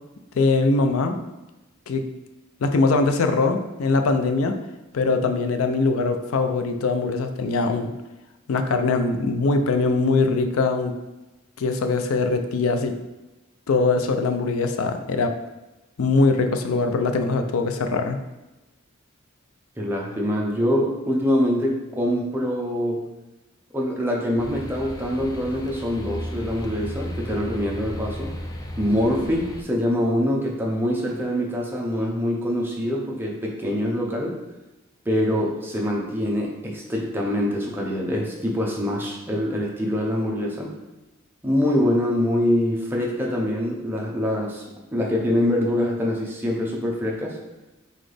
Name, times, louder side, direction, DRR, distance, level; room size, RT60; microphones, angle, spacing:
voice 1, 0.3-1.2 1.9-2.0 2.6-4.5 4.9-7.9 8.5-10.9 11.6-12.9 13.7-15.3 16.0-18.2, left 3 dB, 85° left, 7 dB, 0.4 m, -22 dB
voice 2, 19.8-23.0 23.7-28.3 28.8-34.4 35.1-40.7 41.4-44.6 44.9-47.4, equal, 10° right, -2 dB, 0.7 m, -24 dB
sound 1, 24.4-29.6, left 1 dB, 20° left, 0.3 m, -34 dB
4.1 x 3.8 x 3.3 m, 1.0 s
head